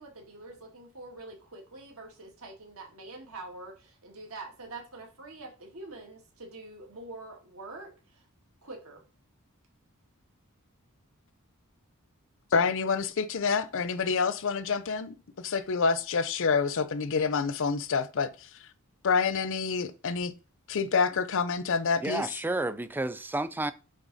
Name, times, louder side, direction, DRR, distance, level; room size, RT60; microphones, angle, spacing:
voice 1, 0.0-8.2 8.6-9.0, right 2 dB, 70° right, 1.8 m, -45 dB
voice 2, 12.5-18.3 19.0-20.3 20.7-22.3, left 5 dB, 60° left, 0.6 m, -27 dB
voice 3, 22.0-23.7, right 2 dB, 10° right, 0.3 m, -31 dB
9.9 x 3.9 x 4.0 m
head